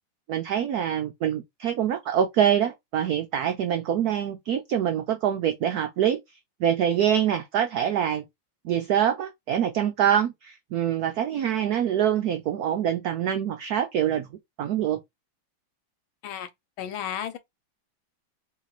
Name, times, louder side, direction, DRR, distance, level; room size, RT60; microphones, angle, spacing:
voice 1, 0.3-6.2 6.6-8.2 8.6-15.0, right 9 dB, 85° right, 0.8 m, -25 dB
voice 2, 16.8-17.4, left 9 dB, 80° left, 1.6 m, -33 dB
3.1 x 3.0 x 4.0 m
omnidirectional pair, 2.2 m